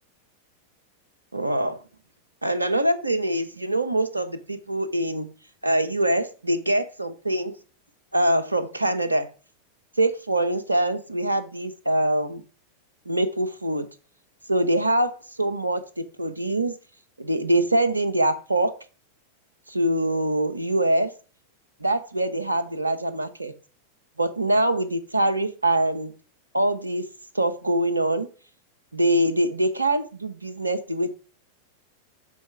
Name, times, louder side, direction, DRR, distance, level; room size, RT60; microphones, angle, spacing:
voice 1, 1.3-1.8 2.4-5.3 5.6-7.5 8.1-9.3 10.0-12.4 13.1-13.9 14.5-15.1 15.4-16.7 17.2-18.7 19.7-21.1 21.8-23.5 24.2-26.1 26.5-27.1 27.3-28.3 28.9-31.1, right 1 dB, 80° right, 11 dB, 0.8 m, -24 dB
7.3 x 4.1 x 4.7 m, 0.36 s
figure-of-eight pair, 90°, 0 cm